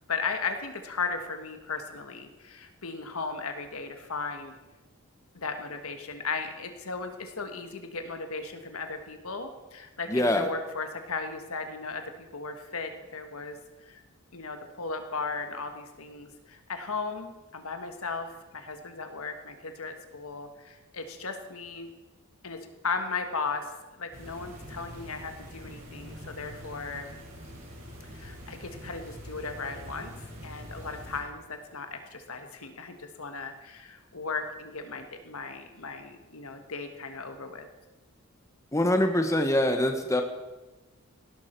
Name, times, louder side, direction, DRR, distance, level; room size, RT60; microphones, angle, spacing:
voice 1, 0.1-4.5 5.3-14.0 14.3-21.9 22.4-23.7 24.0-27.1 28.1-30.1 30.4-37.7, left 4 dB, 75° left, 6 dB, 1.5 m, -36 dB
voice 2, 10.1-10.5 38.7-40.2, left 1 dB, 15° left, 6 dB, 1.0 m, -24 dB
sound 1, 24.1-31.2, equal, 65° right, 5.7 m, -44 dB
18.0 x 12.0 x 4.5 m, 1.1 s
head